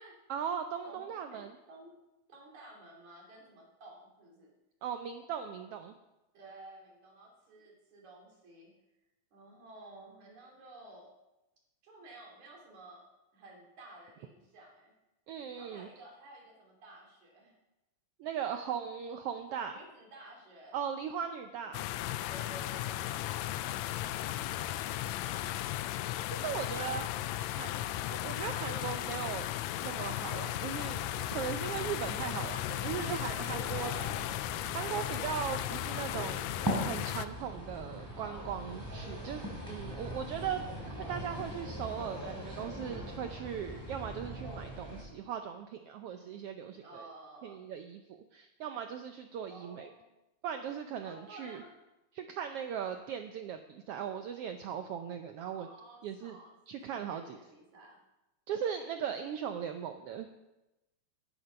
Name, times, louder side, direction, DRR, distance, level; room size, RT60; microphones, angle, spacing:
voice 1, 0.3-1.5 4.8-5.9 15.3-15.9 18.2-19.8 20.7-21.8 26.2-27.1 27.4-27.8 28.1-29.5 29.8-31.0 31.3-33.9 34.7-36.5 36.9-47.1 47.4-49.9 50.4-51.6 52.1-55.7 56.0-56.4 56.7-57.4 58.5-60.3, right 8 dB, 90° right, 7 dB, 1.3 m, -38 dB
voice 2, 0.8-1.9 2.3-4.5 6.3-8.7 9.3-11.1 11.8-14.9 15.5-17.6 19.5-20.8 21.5-21.8 22.3-23.4 23.7-24.7 25.3-26.0 26.6-26.9 27.3-27.7 28.0-28.4 33.7-34.3 39.7-40.3 46.1-47.6 49.5-50.0 51.0-51.8 55.6-56.6 56.9-58.0, right 1 dB, 70° right, -2 dB, 4.3 m, -53 dB
sound 1, 21.7-37.3, left 14 dB, 80° left, 1.7 m, -36 dB
sound 2, 30.9-45.0, equal, 5° right, 3.4 m, -41 dB
11.0 x 11.0 x 5.6 m, 0.98 s
omnidirectional pair, 3.5 m